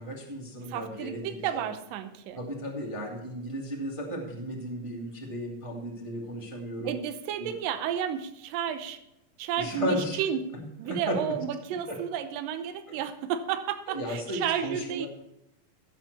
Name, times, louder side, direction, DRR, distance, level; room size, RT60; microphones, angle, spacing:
voice 1, 0.0-1.6 2.3-7.0 7.4-7.5 9.6-10.2 10.8-11.3 11.9-12.0 12.9-13.0 13.9-15.1, equal, 15° right, -2 dB, 1.4 m, -35 dB
voice 2, 0.7-2.4 6.8-9.0 9.4-10.4 10.8-15.1, right 9 dB, 85° right, 9 dB, 2.5 m, -32 dB
16.0 x 7.4 x 4.1 m, 0.85 s
omnidirectional pair, 3.9 m